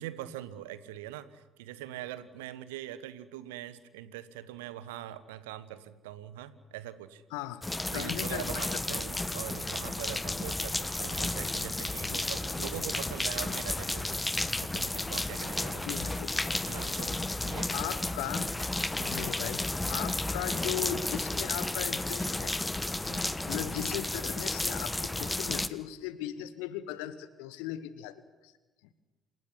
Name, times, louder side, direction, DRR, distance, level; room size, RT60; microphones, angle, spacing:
voice 1, 0.0-7.2 7.9-14.2 14.6-15.9 16.7-17.8 19.0-19.2 23.1-23.3, right 13 dB, 70° right, 15 dB, 1.2 m, -43 dB
voice 2, 7.3-9.0 15.8-16.6 17.7-18.5 19.0-22.6 23.5-28.5, left 12 dB, 65° left, 15 dB, 1.1 m, -38 dB
sound 1, 7.6-25.7, left 2 dB, 15° left, 1.3 m, -32 dB
28.0 x 16.5 x 9.9 m, 1.1 s
figure-of-eight pair, 50°, 0 cm